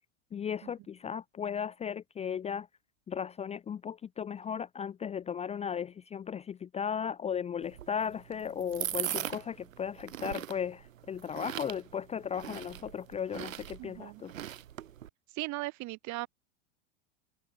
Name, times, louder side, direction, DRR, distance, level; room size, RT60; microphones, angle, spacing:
voice 1, 0.3-2.7 3.1-14.3, left 7 dB, 15° left, 0.7 m, -36 dB
sound 1, 7.6-15.1, right 11 dB, 80° right, 5.8 m, -40 dB
voice 2, 13.8-14.2 15.3-16.3, right 21 dB, 45° right, 6.9 m, -38 dB
hypercardioid pair, 115°, 39 cm